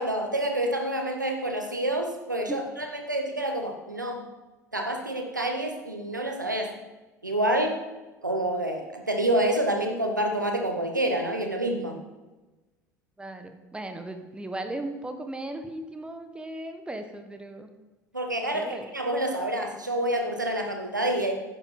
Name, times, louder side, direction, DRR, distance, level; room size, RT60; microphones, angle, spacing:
voice 1, 0.0-4.2 4.7-6.7 7.2-7.8 8.2-12.0 18.1-21.3, right 1 dB, 85° right, 3 dB, 1.3 m, -28 dB
voice 2, 13.2-17.7 18.5-18.9, right 1 dB, 10° right, 7 dB, 1.3 m, -37 dB
11.0 x 10.0 x 4.3 m, 1.1 s
figure-of-eight pair, 70°, 10 cm